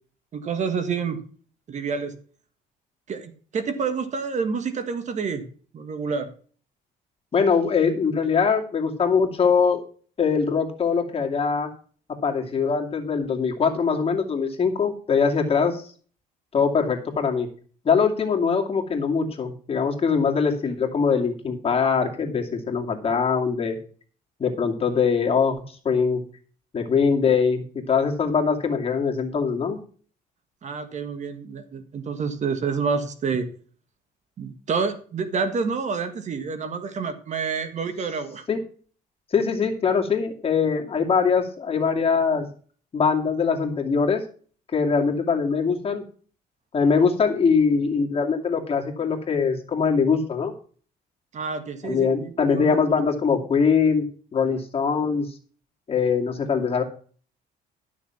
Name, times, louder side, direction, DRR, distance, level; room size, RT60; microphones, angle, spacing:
voice 1, 0.3-1.2 1.7-2.1 3.1-5.4 5.7-6.3 30.6-33.5 34.4-38.4 51.3-52.8, right 5 dB, 45° right, 9 dB, 1.6 m, -28 dB
voice 2, 7.3-9.8 10.2-11.7 12.2-15.8 16.5-17.5 17.8-23.8 24.4-26.2 26.7-29.8 38.5-38.6 39.3-42.5 42.9-44.2 44.7-46.0 46.7-50.5 51.8-54.0 54.3-55.3 55.9-56.8, left 5 dB, 35° left, 2 dB, 2.5 m, -22 dB
12.5 x 6.5 x 5.8 m, 0.43 s
cardioid pair, 110°, 17 cm